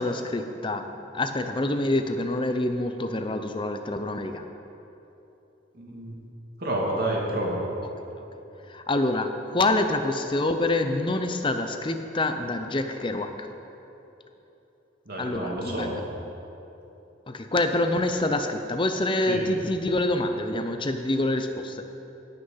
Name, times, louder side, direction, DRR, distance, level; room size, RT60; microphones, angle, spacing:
voice 1, 0.0-4.5 8.2-8.3 8.7-13.5 15.2-16.0 17.3-21.8, left 2 dB, 25° left, 7 dB, 0.7 m, -26 dB
voice 2, 5.8-6.1 6.6-7.6 15.1-15.9 19.2-19.5, right 1 dB, 55° right, -2 dB, 2.3 m, -29 dB
18.0 x 6.5 x 5.7 m, 3.0 s
head